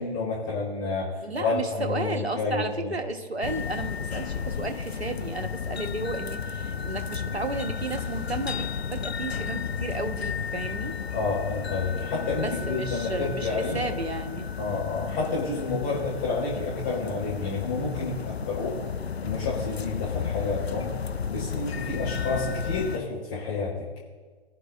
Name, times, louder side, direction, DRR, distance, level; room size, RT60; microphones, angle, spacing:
voice 1, 0.0-2.9 11.1-13.8 14.6-18.7 19.2-20.9 21.3-23.7, left 3 dB, 30° left, -6 dB, 4.5 m, -30 dB
voice 2, 1.2-11.0 12.4-14.5, right 2 dB, 85° right, 6 dB, 1.2 m, -33 dB
sound 1, 3.4-23.0, left 6 dB, 80° left, 0.6 m, -33 dB
20.5 x 11.0 x 2.5 m, 1.4 s
figure-of-eight pair, 125°, 31 cm